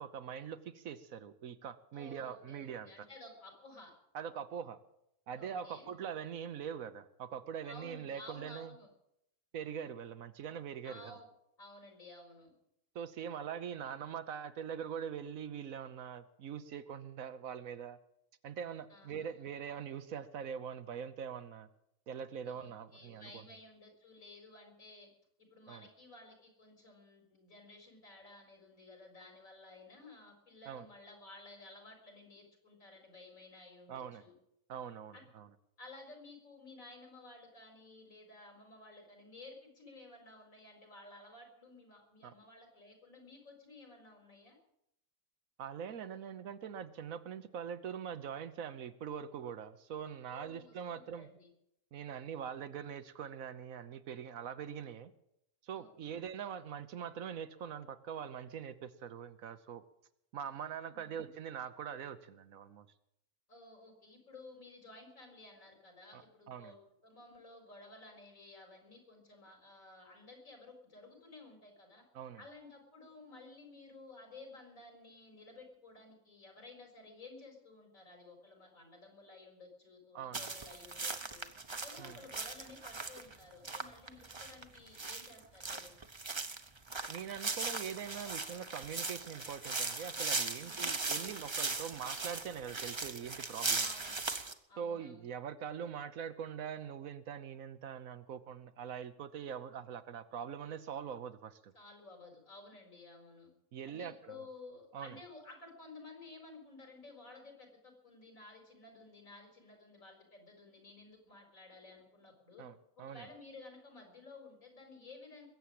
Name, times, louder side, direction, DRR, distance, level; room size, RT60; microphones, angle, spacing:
voice 1, 0.0-3.1 4.1-4.8 5.3-8.7 9.5-11.1 12.9-18.0 18.4-21.7 22.1-23.4 25.7-25.9 30.7-30.9 33.9-34.2 34.7-35.5 42.2-42.3 45.6-51.3 51.9-55.1 55.6-59.8 60.3-62.9 66.1-66.2 66.5-66.7 72.1-72.4 80.1-80.5 82.0-82.2 87.1-93.9 94.8-101.7 103.7-104.3 104.9-105.2 112.6-113.3, right 8 dB, 80° right, 12 dB, 1.3 m, -43 dB
voice 2, 1.9-3.9 5.4-5.9 7.6-8.9 10.8-11.3 11.6-12.5 18.9-19.3 22.4-25.1 25.4-34.3 35.1-35.2 35.8-44.6 50.3-51.5 55.7-56.1 60.9-61.3 63.5-72.0 72.4-81.5 81.8-86.0 90.5-91.0 93.8-94.2 94.7-95.3 101.7-103.5 103.8-112.7 112.9-115.5, left 2 dB, 75° left, 3 dB, 4.9 m, -54 dB
sound 1, 80.3-94.5, right 3 dB, 25° right, 0.8 m, -38 dB
21.5 x 8.5 x 7.6 m, 0.79 s
omnidirectional pair, 1.4 m